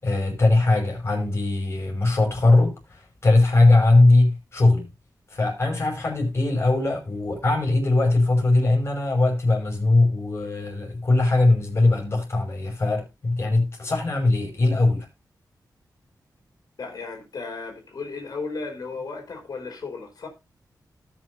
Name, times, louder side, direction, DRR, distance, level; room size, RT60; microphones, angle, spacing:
voice 1, 0.0-4.9 5.3-15.1, left 2 dB, 40° left, 5.7 m, -20 dB
voice 2, 16.8-20.3, left 4 dB, 65° left, 4.1 m, -35 dB
18.5 x 6.5 x 2.6 m
wide cardioid pair, 115°, 7 cm